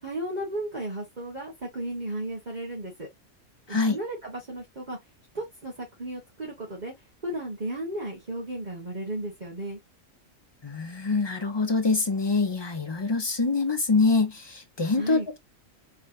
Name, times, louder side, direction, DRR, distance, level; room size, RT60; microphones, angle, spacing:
voice 1, 0.0-3.1 3.7-5.0 5.3-6.9 7.2-9.8 15.0-15.3, right 1 dB, 35° right, 1.5 m, -34 dB
voice 2, 10.6-15.4, left 3 dB, 30° left, 0.5 m, -25 dB
3.5 x 3.3 x 2.5 m
omnidirectional pair, 1.4 m